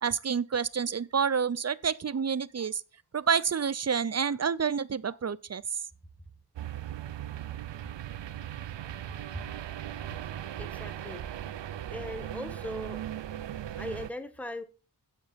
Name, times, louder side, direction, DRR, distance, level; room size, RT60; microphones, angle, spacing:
voice 1, 0.0-2.8 3.1-5.6, right 6 dB, 40° right, 0.6 m, -28 dB
sound 1, 6.6-14.1, right 11 dB, 90° right, 0.6 m, -38 dB
voice 2, 10.6-11.4 11.9-13.0 13.8-14.6, left 1 dB, 5° left, 1.4 m, -39 dB
10.5 x 8.0 x 4.1 m
wide cardioid pair, 80°, 42 cm